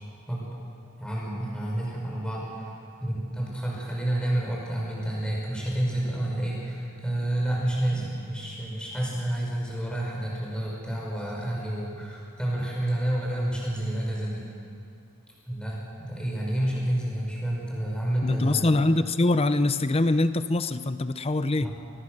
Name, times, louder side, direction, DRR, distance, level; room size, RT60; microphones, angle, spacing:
voice 1, 1.0-2.7 3.0-14.4 15.5-18.7 21.6-21.7, right 1 dB, 5° left, -4 dB, 5.7 m, -29 dB
voice 2, 18.2-21.7, left 2 dB, 25° left, 12 dB, 0.6 m, -23 dB
24.0 x 19.5 x 6.7 m, 2.6 s
head